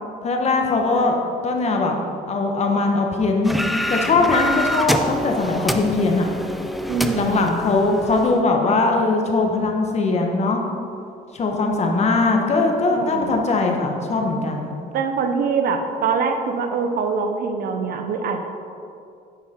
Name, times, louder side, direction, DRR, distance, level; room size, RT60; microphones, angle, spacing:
voice 1, 0.2-1.2 1.4-2.0 2.3-3.6 3.9-6.3 7.1-10.6 11.3-14.7, left 3 dB, 40° left, 2 dB, 1.2 m, -20 dB
sound 1, 3.4-8.4, equal, ahead, 0.4 m, -26 dB
voice 2, 6.9-7.5 12.9-13.4 14.9-18.4, right 5 dB, 65° right, 6 dB, 0.9 m, -24 dB
9.7 x 5.7 x 4.4 m, 2.5 s
cardioid pair, 110°, 17 cm